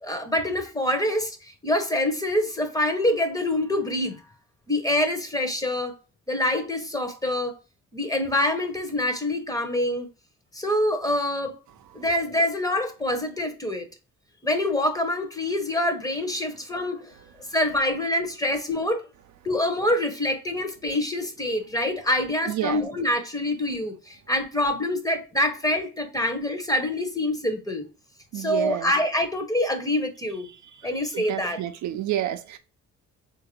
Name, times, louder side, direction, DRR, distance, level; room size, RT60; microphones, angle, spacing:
voice 1, 0.0-4.2 4.7-6.0 6.3-7.6 7.9-10.1 10.5-11.5 11.9-13.9 14.4-17.1 17.5-19.0 19.4-27.8 28.3-30.5 30.8-31.6, left 1 dB, 10° left, 0.8 m, -25 dB
voice 2, 22.5-22.8 28.3-28.9 31.1-32.6, right 12 dB, 70° right, 0.5 m, -29 dB
3.6 x 2.5 x 3.0 m
cardioid pair, 90°, 30 cm